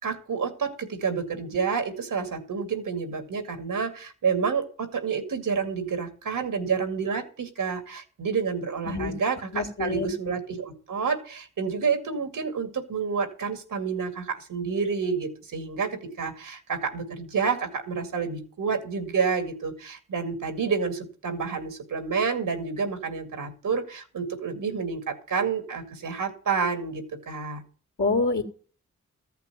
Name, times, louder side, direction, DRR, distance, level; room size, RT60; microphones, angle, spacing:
voice 1, 0.0-27.6, right 5 dB, 85° right, 7 dB, 2.4 m, -29 dB
voice 2, 9.5-10.1 28.0-28.4, left 3 dB, 65° left, -3 dB, 2.3 m, -26 dB
14.0 x 5.9 x 9.0 m, 0.41 s
cardioid pair, 40°, 32 cm